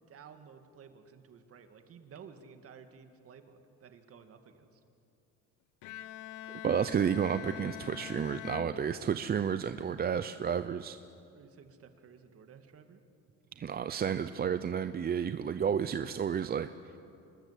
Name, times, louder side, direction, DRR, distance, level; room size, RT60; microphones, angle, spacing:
voice 1, 0.1-4.8 11.3-13.0, right 6 dB, 50° right, 7 dB, 2.1 m, -54 dB
Bowed string instrument, 5.8-9.5, left 12 dB, 85° left, 1.0 m, -45 dB
voice 2, 6.6-11.0 13.6-16.7, right 7 dB, 30° right, 11 dB, 0.6 m, -31 dB
27.0 x 20.5 x 8.2 m, 2.7 s
cardioid pair, 115°, 30 cm